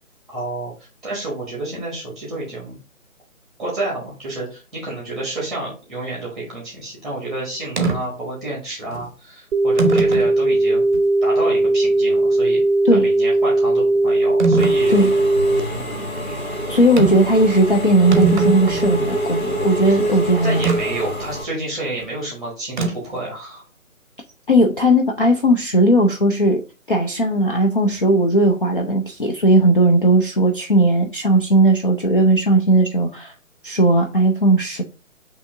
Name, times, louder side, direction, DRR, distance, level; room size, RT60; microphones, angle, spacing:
voice 1, 0.3-0.7 1.0-2.8 3.6-10.8 11.2-12.6 12.9-14.9 15.7-16.4 19.9-23.6, right 2 dB, ahead, -4 dB, 1.0 m, -30 dB
sound 1, 7.8-8.0 8.9-9.0 9.8-10.3 10.9-11.0 14.4-14.8 17.0-17.3 17.6-17.7 18.0-19.0 20.6-20.8 22.8-23.2, right 4 dB, 35° right, 0.7 m, -21 dB
sound 2, 9.5-15.6, right 2 dB, 85° right, 0.6 m, -18 dB
Engine / Mechanisms, 14.6-21.4, right 1 dB, 80° left, 1.9 m, -25 dB
voice 2, 16.7-20.7 24.5-26.6 26.9-33.3 33.6-34.8, right 1 dB, 40° left, 1 dB, 0.4 m, -17 dB
6.7 x 2.9 x 2.5 m, 0.33 s
figure-of-eight pair, 150°, 42 cm